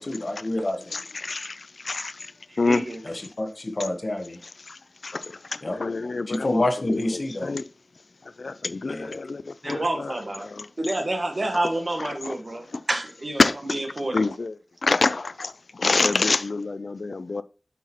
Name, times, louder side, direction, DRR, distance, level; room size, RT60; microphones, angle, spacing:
voice 1, 0.0-1.0 3.0-4.4 5.6-5.8 6.3-7.6 8.8-9.1, left 1 dB, 50° left, 1.1 m, -28 dB
voice 2, 0.9-2.1 2.6-2.8 4.7-4.8 5.0-5.2 5.6-7.6 8.4-10.1 10.4-10.7 12.0-12.4 12.7-12.8 13.4-13.8 14.1-14.6 14.8-15.5 15.8-17.4, left 3 dB, 70° left, 0.3 m, -26 dB
voice 3, 2.5-3.0 3.8-3.9 9.6-10.5 10.8-14.3, right 1 dB, 50° right, 1.4 m, -29 dB
8.1 x 6.1 x 2.9 m
wide cardioid pair, 80°, 0 cm